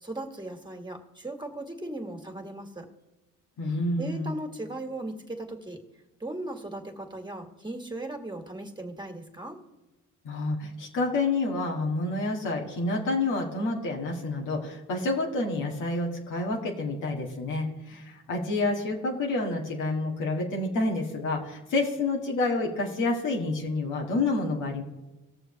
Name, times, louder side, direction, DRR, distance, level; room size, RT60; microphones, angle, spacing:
voice 1, 0.0-2.9 4.0-5.8 6.2-9.6, right 1 dB, 15° right, 4 dB, 2.0 m, -37 dB
voice 2, 3.6-4.3 10.2-24.8, left 2 dB, 85° left, -1 dB, 2.1 m, -28 dB
19.0 x 6.8 x 3.3 m, 1.1 s
cardioid pair, 90°, 30 cm